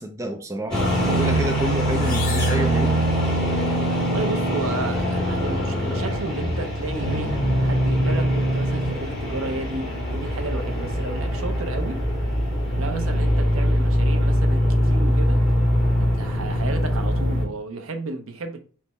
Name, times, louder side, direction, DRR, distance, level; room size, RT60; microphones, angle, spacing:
voice 1, 0.0-3.0, right 1 dB, 15° right, 0.4 m, -29 dB
sound 1, 0.7-17.4, equal, 5° left, 1.8 m, -22 dB
sound 2, 1.9-3.7, left 4 dB, 40° left, 1.0 m, -36 dB
voice 2, 4.0-7.3 7.6-12.0 12.7-15.4 15.9-18.6, right 2 dB, 75° right, 0.7 m, -33 dB
3.4 x 3.0 x 4.2 m
head